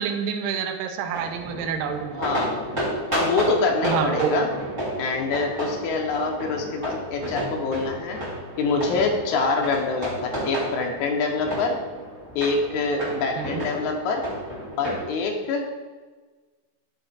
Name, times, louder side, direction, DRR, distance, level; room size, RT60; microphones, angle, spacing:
voice 1, 0.0-2.3 3.8-4.5 13.4-13.6, right 6 dB, 80° right, 5 dB, 2.3 m, -27 dB
sound 1, 1.1-15.1, right 1 dB, 25° right, 1.9 m, -32 dB
voice 2, 2.2-2.6 3.1-4.5 5.0-8.2 8.6-11.8 12.4-14.3 14.8-15.6, left 4 dB, 85° left, 2 dB, 1.6 m, -25 dB
11.0 x 3.7 x 4.2 m, 1.3 s
omnidirectional pair, 4.4 m